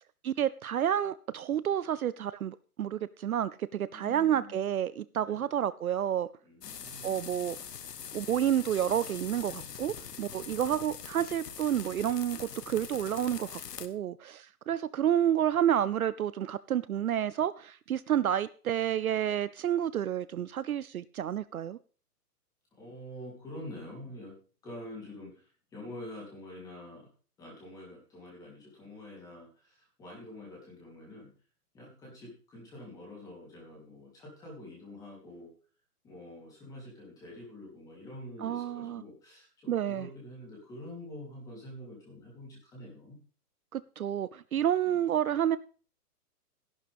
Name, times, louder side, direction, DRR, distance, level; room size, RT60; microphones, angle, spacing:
voice 1, 0.2-6.3 7.0-7.6 8.1-21.8 38.4-39.0 39.7-40.1 43.7-45.6, right 10 dB, 65° right, 0.6 m, -30 dB
voice 2, 3.9-4.8 5.2-5.5 6.4-7.3 10.3-10.9 22.7-27.1 27.4-31.3 31.7-35.5 36.0-43.2 44.8-45.2, left 1 dB, 5° left, 3.2 m, -47 dB
sound 1, 6.6-13.9, left 7 dB, 85° left, 1.5 m, -43 dB
13.5 x 11.5 x 3.5 m
hypercardioid pair, 175°, 47 cm